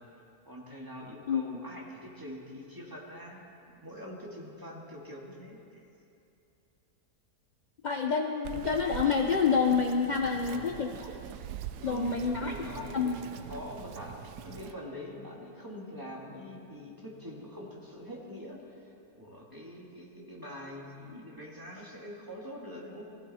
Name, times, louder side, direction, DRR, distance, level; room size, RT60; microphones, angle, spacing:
voice 1, 0.5-5.6 10.2-10.7 11.8-23.0, equal, 15° right, -3 dB, 2.1 m, -44 dB
voice 2, 7.8-10.9 11.8-12.5 12.9-13.2, left 5 dB, 55° left, 3 dB, 0.5 m, -27 dB
Bird vocalization bird call bird song, 8.4-14.7, right 10 dB, 85° right, 1.2 m, -43 dB
20.0 x 15.0 x 4.2 m, 2.7 s
omnidirectional pair, 1.7 m